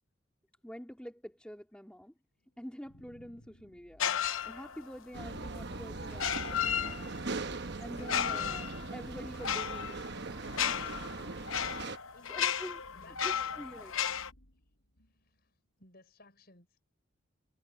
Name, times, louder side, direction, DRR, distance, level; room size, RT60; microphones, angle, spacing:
voice 1, 0.6-2.1 2.6-4.1 4.4-10.4 12.3-12.8 13.2-14.0, equal, 5° left, 2.5 m, -47 dB
sound 1, 2.6-15.4, equal, 90° left, 7.5 m, -61 dB
sound 2, 4.0-4.9 6.1-7.4 8.0-14.3, left 8 dB, 70° left, 0.8 m, -34 dB
sound 3, 5.1-12.0, right 3 dB, 50° right, 1.0 m, -40 dB
voice 2, 12.1-13.6 15.2-15.5 15.8-16.8, left 2 dB, 45° left, 6.1 m, -59 dB
head